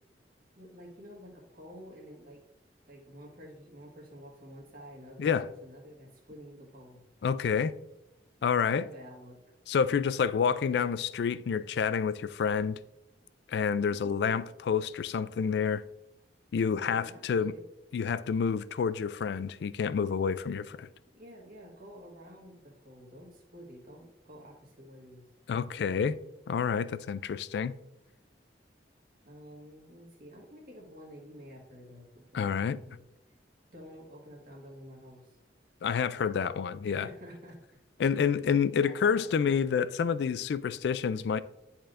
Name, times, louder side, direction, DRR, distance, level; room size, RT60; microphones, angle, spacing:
voice 1, 0.5-2.4 2.8-7.0 8.7-9.4 10.1-10.2 16.7-17.7 21.1-25.2 29.2-33.0 33.7-35.4 36.8-37.6 38.1-38.3 38.7-39.5, equal, 55° right, 1.6 m, -50 dB
voice 2, 7.2-7.7 8.4-8.8 9.7-12.8 13.5-15.8 16.5-17.5 17.9-20.9 25.5-26.2 26.5-27.7 32.3-32.8 35.8-37.1 38.0-41.4, left 6 dB, 70° left, 0.3 m, -28 dB
10.5 x 4.3 x 2.5 m
head